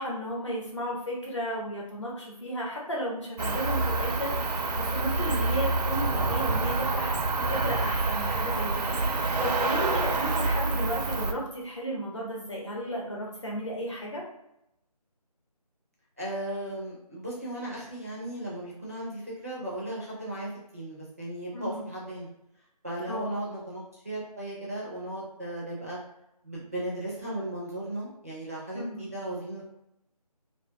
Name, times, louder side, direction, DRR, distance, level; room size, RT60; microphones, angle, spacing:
voice 1, 0.0-7.2 7.5-14.2 21.5-21.8 23.1-23.3 28.7-29.0, equal, 45° left, -3 dB, 0.8 m, -34 dB
Cricket, 3.4-11.3, right 3 dB, 80° right, 0.5 m, -27 dB
voice 2, 10.2-10.5 16.2-22.3 22.8-26.0 26.4-29.8, right 1 dB, 25° right, -6 dB, 0.4 m, -36 dB
2.6 x 2.2 x 3.2 m, 0.82 s
figure-of-eight pair, 165°, 20 cm